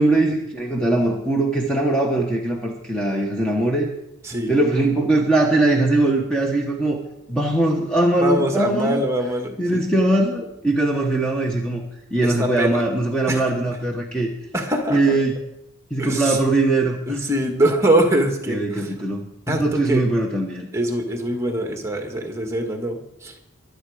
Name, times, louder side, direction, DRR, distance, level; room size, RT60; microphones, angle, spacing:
voice 1, 0.0-3.9 4.5-7.0 7.3-9.0 9.6-11.8 12.1-14.3 14.9-15.4 15.9-17.2 18.5-20.7, right 2 dB, 5° left, -1 dB, 1.3 m, -21 dB
voice 2, 8.2-9.9 12.2-12.8 13.3-13.4 14.5-15.0 16.0-16.4 17.1-18.9 19.5-20.0 20.7-23.3, right 1 dB, 15° right, 3 dB, 1.8 m, -23 dB
23.0 x 8.1 x 5.0 m, 0.80 s
head